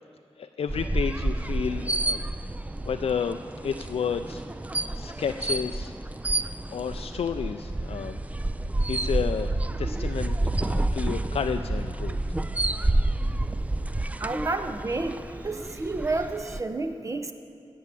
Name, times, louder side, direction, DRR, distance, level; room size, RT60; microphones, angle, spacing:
voice 1, 0.4-2.2 2.8-5.9 6.7-8.2 8.9-9.5 9.8-12.2, left 7 dB, 85° left, 7 dB, 0.4 m, -31 dB
sound 1, 0.7-16.6, right 2 dB, 15° right, 0.4 m, -29 dB
voice 2, 14.2-17.3, right 3 dB, 30° right, 8 dB, 0.8 m, -30 dB
16.5 x 6.3 x 8.3 m, 2.5 s
wide cardioid pair, 115°, 10 cm